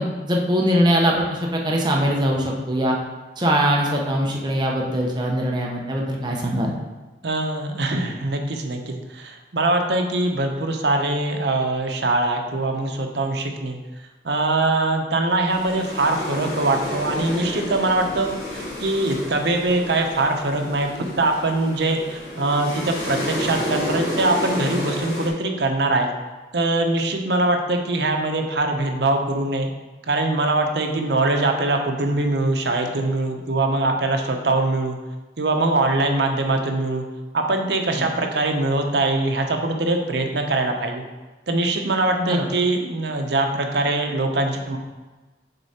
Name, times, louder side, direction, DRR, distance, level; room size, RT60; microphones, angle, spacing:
voice 1, 0.0-3.0 3.4-6.7 37.9-38.1 42.2-42.5, equal, 25° right, -1 dB, 0.8 m, -22 dB
voice 2, 7.2-13.8 14.2-20.9 21.2-26.1 26.5-29.7 30.1-35.0 35.4-37.0 37.3-41.0 41.5-44.8, right 2 dB, 75° right, 3 dB, 0.8 m, -22 dB
sound 1, 15.5-25.3, left 1 dB, 70° left, 1.9 m, -31 dB
6.7 x 3.8 x 4.2 m, 1.2 s
head